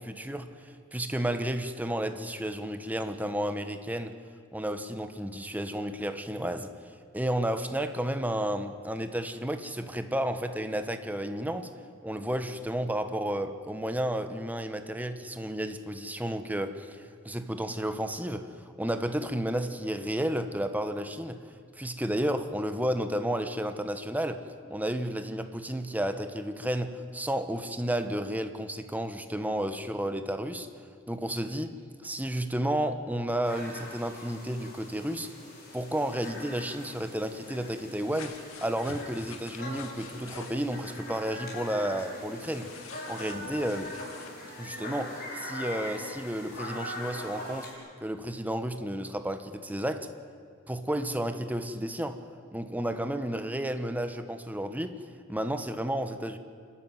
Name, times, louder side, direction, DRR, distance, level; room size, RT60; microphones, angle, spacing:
voice 1, 0.0-4.2 4.5-6.7 7.1-11.7 12.0-21.4 21.8-30.7 31.1-31.8 32.0-35.3 35.7-42.7 43.1-43.9 44.6-47.7 48.0-50.1 50.7-52.2 52.5-55.0 55.3-56.4, right 1 dB, 10° right, 9 dB, 1.1 m, -32 dB
sound 1, 33.4-47.7, left 1 dB, 45° left, 6.3 m, -42 dB
sound 2, 38.1-40.7 42.5-44.3, left 4 dB, 85° left, 2.3 m, -46 dB
28.0 x 13.0 x 9.3 m, 2.3 s
head